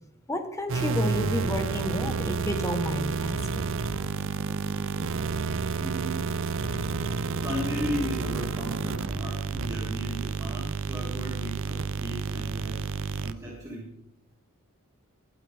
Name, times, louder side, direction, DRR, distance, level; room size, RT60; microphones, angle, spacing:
voice 1, 0.3-3.7, left 1 dB, 15° left, 6 dB, 1.2 m, -31 dB
sound 1, 0.7-13.3, right 4 dB, 60° right, 0.6 m, -30 dB
voice 2, 5.8-6.3 7.4-12.8 13.2-13.9, equal, 15° right, -6 dB, 2.4 m, -36 dB
19.5 x 8.8 x 3.5 m, 0.88 s
head